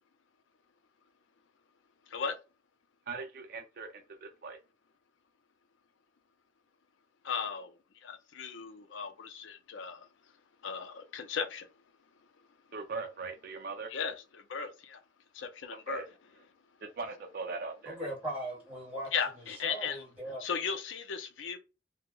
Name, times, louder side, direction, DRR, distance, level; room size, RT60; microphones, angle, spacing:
voice 1, 3.1-4.6 12.7-13.9 15.9-16.1 16.8-18.0, right 4 dB, 50° right, 0.5 m, -40 dB
voice 2, 7.2-7.7 8.0-10.0 10.6-11.7 13.9-15.0 15.4-16.0 19.1-20.0 20.4-21.6, left 6 dB, 70° left, 0.5 m, -36 dB
voice 3, 17.8-19.1 19.6-20.4, right 1 dB, 10° right, 1.5 m, -38 dB
2.7 x 2.0 x 3.7 m
head